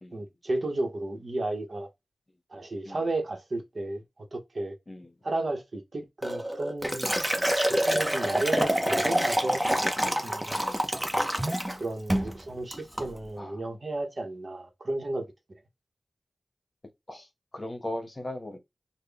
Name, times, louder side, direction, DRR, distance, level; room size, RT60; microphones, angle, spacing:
voice 1, 0.1-1.9 2.5-4.0 4.3-4.8 5.2-7.1 7.7-9.6 10.2-10.6 11.8-15.3, right 2 dB, 55° right, 0.9 m, -33 dB
Liquid, 6.2-11.8 12.1-12.3 12.7-13.1, equal, 10° right, 0.7 m, -27 dB
voice 2, 10.6-10.9 13.4-13.6 17.1-17.3 17.5-18.6, left 1 dB, 30° left, 1.0 m, -38 dB
3.5 x 2.2 x 3.4 m
wide cardioid pair, 70°, 0 cm